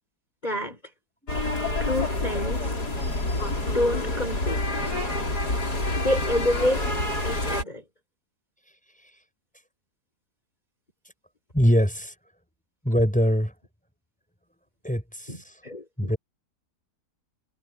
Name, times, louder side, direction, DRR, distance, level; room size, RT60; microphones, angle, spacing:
voice 1, 0.4-0.8 1.8-2.8 3.7-4.7 6.0-6.9 7.2-7.8 15.3-16.1, left 1 dB, 25° left, 5.2 m, -28 dB
sound 1, 1.3-7.6, left 2 dB, 85° left, 6.0 m, -27 dB
voice 2, 11.5-12.1 12.8-13.5 14.8-15.6 16.0-16.2, equal, 5° left, 6.3 m, -23 dB
omnidirectional pair, 1.7 m